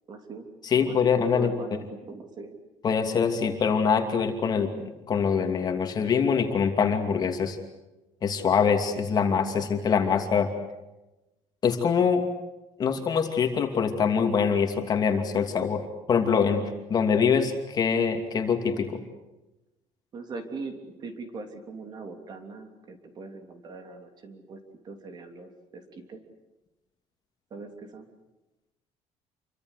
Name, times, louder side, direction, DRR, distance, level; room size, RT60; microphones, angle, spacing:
voice 1, 0.1-0.5 0.7-1.0 1.3-2.5 20.1-24.6 24.8-26.2 27.5-28.1, right 3 dB, 35° right, 6 dB, 3.3 m, -41 dB
voice 2, 0.6-1.5 2.8-4.7 5.1-7.6 8.2-10.5 11.6-12.3 12.8-15.8 16.1-16.6 16.9-19.0, left 6 dB, 30° left, 4 dB, 2.7 m, -24 dB
28.5 x 24.5 x 8.2 m, 1.0 s
cardioid pair, 175°, 13 cm